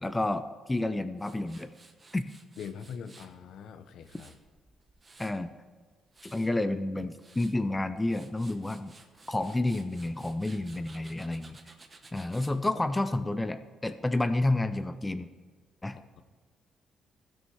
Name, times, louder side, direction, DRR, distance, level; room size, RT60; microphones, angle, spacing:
voice 1, 0.0-1.7 2.1-2.2 5.2-5.5 6.2-8.9 9.3-11.6 12.1-15.3 15.8-16.0, left 2 dB, 10° left, 10 dB, 0.4 m, -30 dB
Tools, 1.2-3.3 3.8-5.5 5.9-6.5 7.0-7.6 8.0-12.5, right 3 dB, 20° right, 0.9 m, -55 dB
voice 2, 2.6-4.4 15.9-16.2, left 7 dB, 65° left, 10 dB, 0.7 m, -43 dB
15.5 x 6.3 x 4.7 m, 1.5 s
cardioid pair, 160°, 0 cm